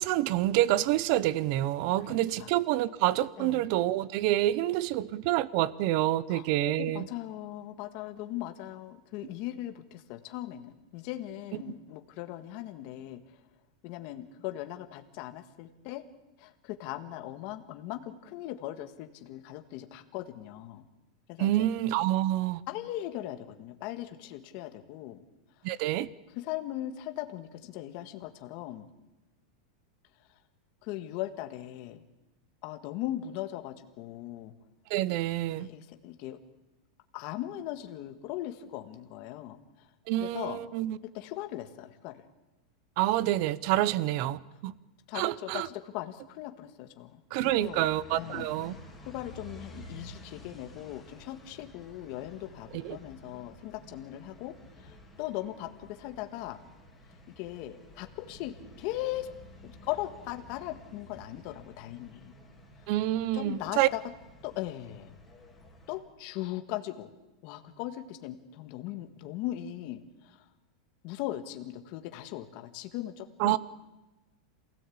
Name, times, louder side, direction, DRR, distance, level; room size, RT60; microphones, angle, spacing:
voice 1, 0.0-7.1 21.4-22.6 25.6-26.1 34.9-35.7 40.1-41.0 43.0-44.7 45.1-45.7 47.3-48.7 52.8-53.0 62.9-63.9 73.4-73.6, right 14 dB, 40° right, 20 dB, 0.7 m, -27 dB
voice 2, 2.0-2.5 3.4-3.7 6.3-13.4 13.8-16.0 16.4-20.9 21.3-21.7 22.7-25.2 26.3-28.9 30.8-32.0 32.6-34.5 35.6-36.4 37.1-39.9 40.2-40.6 41.1-42.2 45.1-48.5 49.1-56.6 57.4-59.3 59.6-62.3 63.3-64.0 64.4-65.1 65.9-67.1 67.4-70.5 71.0-73.6, left 14 dB, 35° left, 7 dB, 1.6 m, -39 dB
sound 1, 47.4-66.0, left 1 dB, 5° left, 3.3 m, -51 dB
27.5 x 17.0 x 8.6 m, 1.1 s
supercardioid pair, 175°, 3 cm